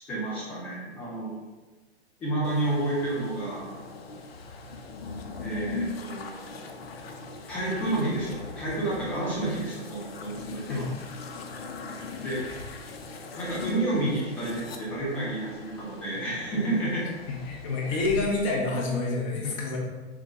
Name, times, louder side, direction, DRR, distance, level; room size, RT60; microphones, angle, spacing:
voice 1, 0.1-1.4 2.2-3.7 5.4-6.6 7.5-10.9 12.2-12.5 13.4-17.1 17.8-18.0, right 2 dB, 5° left, -5 dB, 0.3 m, -30 dB
sound 1, 2.4-18.2, left 3 dB, 60° left, 0.6 m, -40 dB
voice 2, 17.3-19.8, left 3 dB, 30° left, -1 dB, 0.8 m, -28 dB
5.9 x 2.2 x 2.9 m, 1.2 s
figure-of-eight pair, 110°, 34 cm